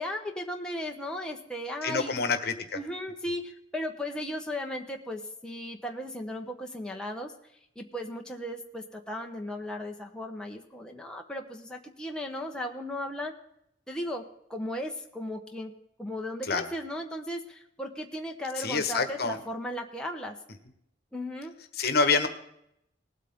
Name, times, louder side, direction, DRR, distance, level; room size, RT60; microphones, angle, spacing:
voice 1, 0.0-2.1 2.7-7.3 7.8-13.3 13.9-14.2 14.5-15.7 16.0-20.4 21.1-21.5, left 1 dB, 5° left, 1 dB, 1.0 m, -36 dB
voice 2, 1.8-2.8 16.5-16.7 18.6-19.4 21.7-22.3, left 4 dB, 55° left, 9 dB, 1.3 m, -27 dB
19.5 x 8.3 x 3.7 m, 0.76 s
head